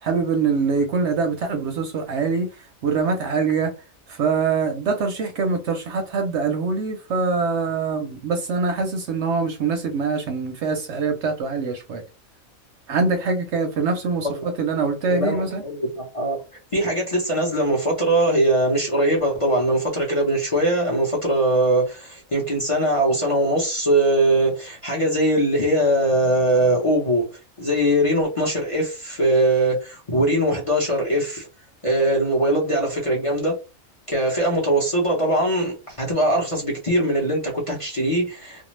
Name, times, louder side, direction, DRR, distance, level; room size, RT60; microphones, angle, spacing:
voice 1, 0.0-2.5 2.8-3.7 4.1-12.0 12.9-15.6, right 4 dB, 65° right, 0.8 m, -24 dB
voice 2, 15.1-16.4 16.7-27.3 27.6-31.5 31.8-33.6 34.1-38.7, right 1 dB, 30° left, 0.7 m, -21 dB
2.5 x 2.1 x 3.1 m
omnidirectional pair, 1.4 m